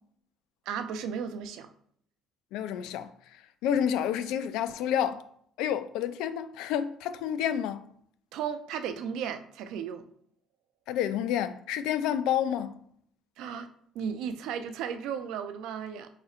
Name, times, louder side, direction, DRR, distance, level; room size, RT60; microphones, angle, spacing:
voice 1, 0.7-1.7 8.3-10.0 13.4-13.7 13.9-16.1, right 7 dB, 70° right, 0.4 m, -35 dB
voice 2, 2.5-3.1 3.6-5.2 5.6-7.8 10.9-12.8, left 9 dB, 85° left, 0.3 m, -29 dB
4.2 x 3.6 x 2.4 m
cardioid pair, 175°, 0 cm